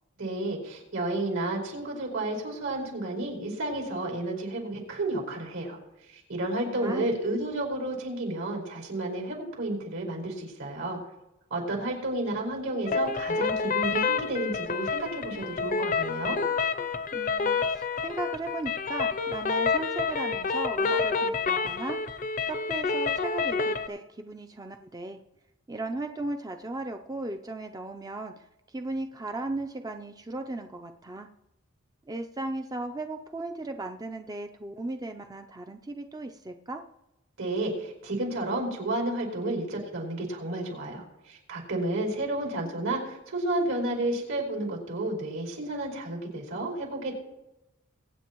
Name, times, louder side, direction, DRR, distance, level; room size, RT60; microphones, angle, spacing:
voice 1, 0.2-5.8 6.1-11.0 11.5-16.4 37.4-47.1, right 2 dB, 75° right, -1 dB, 5.1 m, -31 dB
voice 2, 6.7-7.1 17.1-22.2 22.5-25.2 25.7-31.3 32.1-36.8, right 2 dB, 15° right, 5 dB, 0.4 m, -36 dB
sound 1, 12.9-23.9, left 5 dB, 40° left, 0.6 m, -28 dB
23.0 x 9.2 x 3.0 m, 0.92 s
head